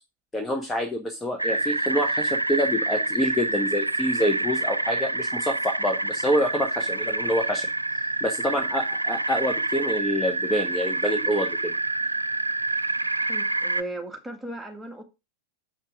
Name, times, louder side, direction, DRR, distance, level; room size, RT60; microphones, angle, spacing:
voice 1, 0.3-7.7 8.2-11.7, equal, 10° left, 1.3 m, -27 dB
sound 1, 1.4-13.8, right 2 dB, 85° right, 0.4 m, -27 dB
voice 2, 13.2-15.0, right 1 dB, 5° right, 1.9 m, -37 dB
7.5 x 5.9 x 4.9 m
figure-of-eight pair, 90°, 0 cm